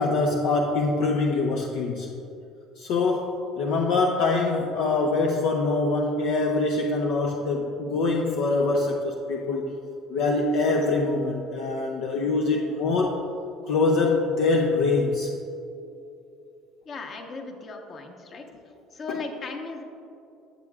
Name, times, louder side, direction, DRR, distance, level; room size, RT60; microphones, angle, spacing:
voice 1, 0.0-2.1 2.8-9.7 10.1-13.2 13.6-15.3 19.1-19.2, left 3 dB, 70° left, 1 dB, 0.6 m, -24 dB
voice 2, 16.8-18.5 18.9-19.8, left 4 dB, 45° left, 3 dB, 1.1 m, -37 dB
13.0 x 7.3 x 2.4 m, 2.6 s
supercardioid pair, 75°, 0 cm